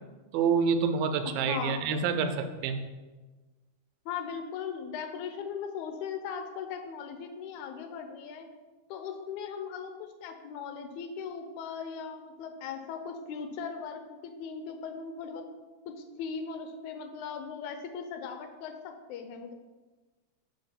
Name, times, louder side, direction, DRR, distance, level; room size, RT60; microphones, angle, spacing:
voice 1, 0.3-2.8, right 6 dB, 80° right, 8 dB, 1.9 m, -27 dB
voice 2, 1.3-1.9 4.1-8.5 8.9-15.5 15.9-19.5, left 6 dB, 85° left, 6 dB, 2.0 m, -38 dB
6.8 x 3.5 x 5.6 m, 1.3 s
omnidirectional pair, 3.4 m